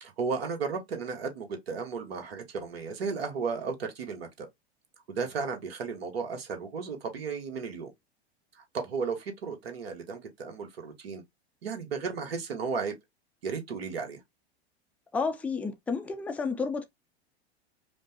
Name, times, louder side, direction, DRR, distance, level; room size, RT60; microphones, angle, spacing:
voice 1, 0.0-4.5 5.1-7.9 8.5-11.2 11.6-13.0 13.4-14.2, right 5 dB, 65° right, 1.3 m, -34 dB
voice 2, 15.1-16.8, left 4 dB, 5° left, 0.4 m, -31 dB
5.0 x 2.1 x 2.7 m
figure-of-eight pair, 90°, 32 cm